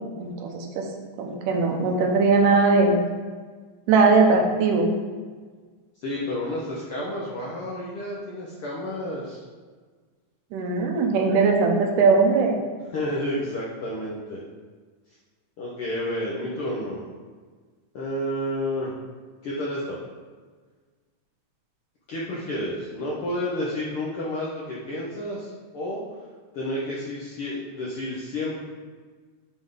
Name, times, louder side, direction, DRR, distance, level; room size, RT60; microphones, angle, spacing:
voice 1, 0.2-0.9 1.2-3.0 3.9-4.9 10.5-12.6, right 4 dB, 85° right, 1 dB, 2.4 m, -20 dB
voice 2, 6.0-9.4 12.9-14.4 15.6-17.1 17.9-18.9 19.4-20.0 22.1-26.0 26.5-28.6, left 1 dB, 75° left, -5 dB, 1.3 m, -30 dB
9.4 x 3.5 x 3.8 m, 1.5 s
omnidirectional pair, 3.7 m